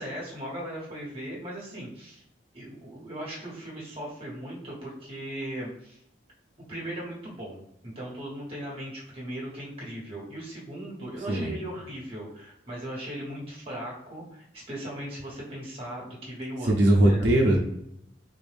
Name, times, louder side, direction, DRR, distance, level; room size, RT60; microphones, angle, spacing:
voice 1, 0.0-2.2 2.5-6.0 6.7-17.3, right 1 dB, 35° right, -4 dB, 1.4 m, -38 dB
voice 2, 16.6-17.6, right 1 dB, 80° right, -1 dB, 0.7 m, -20 dB
3.8 x 2.6 x 3.4 m, 0.76 s
head